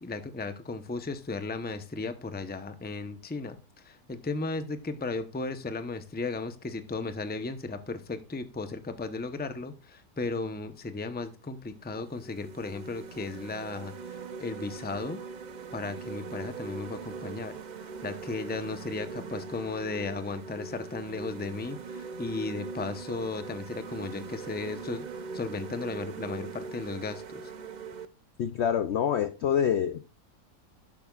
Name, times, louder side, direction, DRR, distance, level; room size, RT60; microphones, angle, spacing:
voice 1, 0.0-15.2 15.7-17.6 18.0-25.1 25.3-27.4, left 3 dB, 10° left, 0.6 m, -35 dB
sound 1, 11.3-11.4 11.9-28.1, right 5 dB, 55° right, 0.5 m, -41 dB
voice 2, 28.4-30.0, left 8 dB, 65° left, 0.7 m, -26 dB
12.0 x 10.5 x 2.4 m
omnidirectional pair, 1.7 m